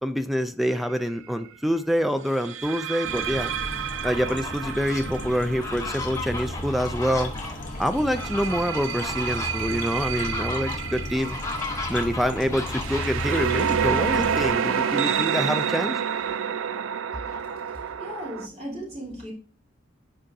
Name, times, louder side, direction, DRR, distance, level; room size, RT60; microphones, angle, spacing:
voice 1, 0.0-3.5 4.0-7.3 7.8-11.4 11.9-16.0, equal, ahead, 0.3 m, -26 dB
sound 1, 0.6-0.9 2.4-7.2 8.0-18.5, right 8 dB, 80° right, 0.4 m, -29 dB
sound 2, 3.0-14.5, left 1 dB, 40° left, 0.9 m, -35 dB
Fowl, 3.9-5.0 5.5-13.3 14.2-15.3 15.7-15.8 16.2-17.9, left 3 dB, 15° left, 0.9 m, -36 dB
voice 2, 17.5-19.3, equal, 35° right, 3.2 m, -37 dB
8.9 x 4.8 x 2.7 m
head